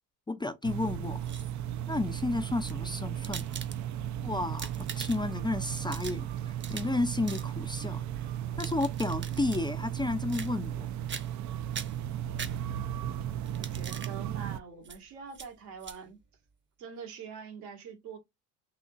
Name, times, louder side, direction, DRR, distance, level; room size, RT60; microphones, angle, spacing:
voice 1, 0.3-1.3 1.9-3.5 4.2-8.3 8.6-10.9, left 2 dB, 10° left, 0.5 m, -32 dB
sound 1, 0.6-14.6, right 11 dB, 50° right, 0.5 m, -35 dB
sound 2, 1.0-1.7 2.5-4.1 4.4-5.4 5.7-7.0 7.3-7.5 8.3-9.7 10.3-10.8 11.1-11.5 11.7-13.0 13.4-14.1 14.8-15.0 15.3-15.5 15.8-16.0, right 6 dB, 30° right, 0.9 m, -42 dB
voice 2, 13.5-16.2 16.8-18.2, right 6 dB, 75° right, 1.8 m, -44 dB
3.9 x 2.8 x 2.4 m
hypercardioid pair, 70°, 39 cm